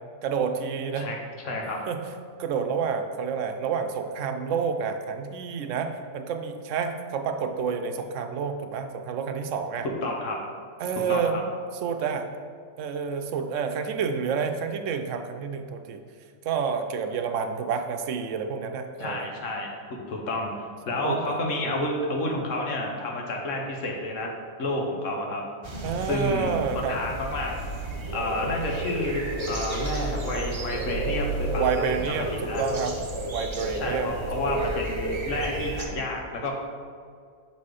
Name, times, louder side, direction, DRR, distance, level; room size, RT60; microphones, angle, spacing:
voice 1, 0.2-1.1 1.9-2.0 2.4-9.9 10.8-11.3 11.8-12.2 12.8-16.0 16.4-19.4 21.0-21.4 25.8-27.0 31.6-33.0 33.3-34.1 34.5-34.7, right 6 dB, 80° right, 7 dB, 1.0 m, -29 dB
voice 2, 1.4-1.8 10.0-10.4 11.0-11.4 19.0-20.5 20.8-24.3 24.6-25.4 26.0-27.5 28.1-32.6 33.7-36.5, left 1 dB, 85° left, 0 dB, 1.4 m, -30 dB
sound 1, 25.6-35.9, right 1 dB, 30° right, 0.6 m, -31 dB
6.6 x 4.2 x 4.8 m, 2.1 s
omnidirectional pair, 1.3 m